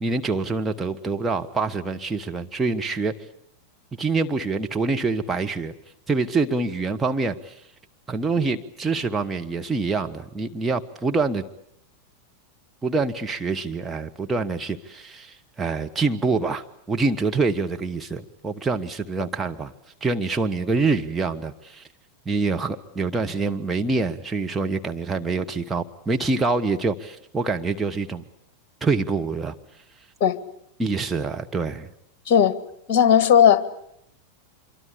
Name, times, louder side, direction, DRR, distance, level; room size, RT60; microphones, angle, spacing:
voice 1, 0.0-3.1 4.0-5.7 6.1-7.6 8.1-11.4 12.8-19.7 20.0-21.9 22.2-28.2 28.8-29.5 30.8-31.9, right 3 dB, 10° right, 4 dB, 1.3 m, -25 dB
voice 2, 32.3-32.6 32.9-33.6, left 8 dB, 40° left, 13 dB, 1.9 m, -16 dB
26.0 x 24.0 x 8.6 m, 0.74 s
figure-of-eight pair, 90°, 0 cm